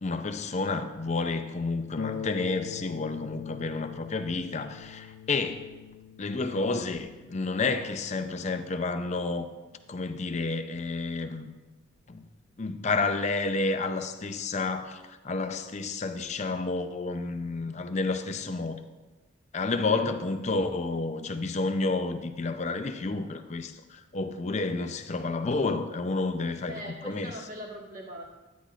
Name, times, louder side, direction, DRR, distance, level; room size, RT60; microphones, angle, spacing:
voice 1, 0.0-5.7 6.2-9.5 9.9-11.5 12.1-12.3 12.6-18.8 19.5-27.3, left 3 dB, 35° left, 9 dB, 0.5 m, -30 dB
Harp, 2.0-11.1 12.0-12.1 12.6-12.7, left 7 dB, 80° left, 0.5 m, -43 dB
voice 2, 26.6-28.2, equal, 45° right, -2 dB, 1.6 m, -41 dB
10.0 x 10.0 x 2.4 m, 1.2 s
head